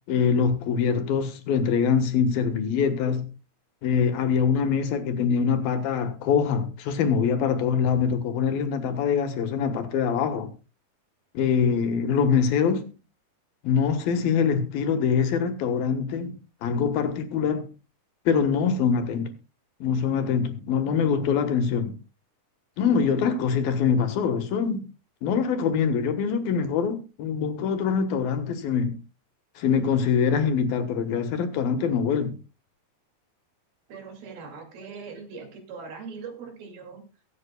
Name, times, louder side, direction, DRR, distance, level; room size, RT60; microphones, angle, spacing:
voice 1, 0.1-3.3 3.8-10.5 11.3-12.9 13.6-16.4 16.6-17.7 18.3-19.3 19.8-22.0 22.8-24.9 25.2-29.0 29.6-32.4, left 6 dB, 70° left, 3.1 m, -24 dB
voice 2, 33.9-37.0, right 5 dB, 70° right, 4.2 m, -41 dB
23.0 x 8.0 x 2.3 m
omnidirectional pair, 4.4 m